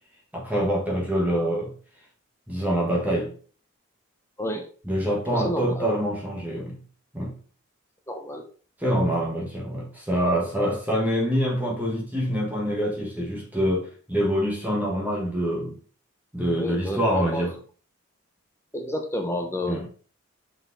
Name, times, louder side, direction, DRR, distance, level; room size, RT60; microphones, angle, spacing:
voice 1, 0.3-1.7 2.5-3.3 4.8-6.8 7.1-7.3 8.8-15.8 16.3-17.5 19.7-19.9, equal, 10° right, 1.5 m, -25 dB
voice 2, 5.3-5.8 8.1-8.4 16.6-17.5 18.7-19.9, equal, 10° left, 1.0 m, -30 dB
6.0 x 5.3 x 4.0 m
head